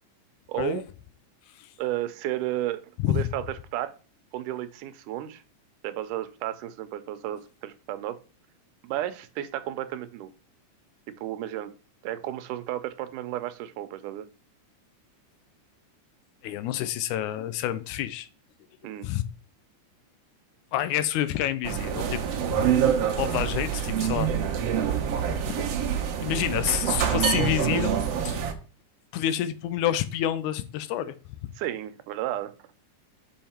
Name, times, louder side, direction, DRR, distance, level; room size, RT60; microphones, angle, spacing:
voice 1, 0.5-0.8 1.8-3.5 3.7-3.9 4.3-5.4 5.8-8.2 8.8-10.3 11.2-11.7 12.0-14.3 18.8-19.1 31.6-32.5, right 13 dB, 90° right, 2.2 m, -32 dB
voice 2, 16.4-18.3 19.0-19.2 20.7-22.7 23.2-24.3 25.3-25.7 26.2-28.0 28.2-28.4 29.1-31.1 31.4-31.5, left 12 dB, 80° left, 1.9 m, -28 dB
sound 1, 21.6-28.5, right 8 dB, 65° right, 1.7 m, -26 dB
5.6 x 5.3 x 4.3 m
omnidirectional pair, 3.6 m